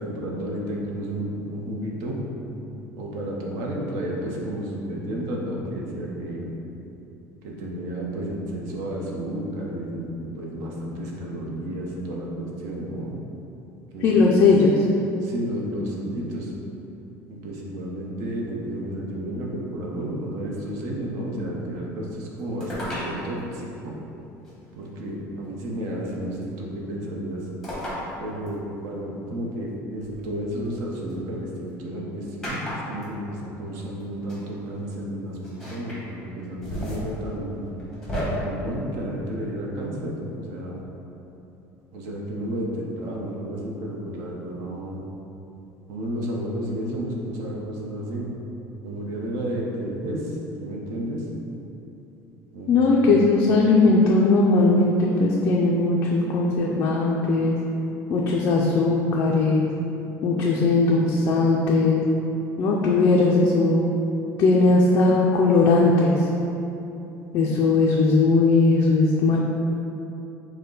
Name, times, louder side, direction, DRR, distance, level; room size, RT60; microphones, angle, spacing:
voice 1, 0.0-2.2 3.0-6.5 7.4-13.1 13.9-14.5 15.2-16.5 17.3-23.9 24.8-27.5 28.2-37.6 38.2-40.8 41.9-45.0 45.9-48.3 48.8-51.3 52.5-53.2, right 1 dB, 60° right, -2 dB, 0.8 m, -32 dB
voice 2, 14.0-14.7 52.7-57.6 58.1-59.7 60.2-62.0 62.6-63.8 64.4-66.3 67.3-69.4, left 3 dB, 35° left, -3 dB, 0.3 m, -19 dB
sound 1, 22.6-23.1 24.5-24.6 26.1-26.4 27.6-28.0 28.5-28.6 30.0-31.1 32.4-33.1 34.0-34.1 34.3-34.4 35.4-36.0 36.4-38.2, equal, 5° left, 0.9 m, -34 dB
6.3 x 2.2 x 3.8 m, 2.9 s
cardioid pair, 180°, 7 cm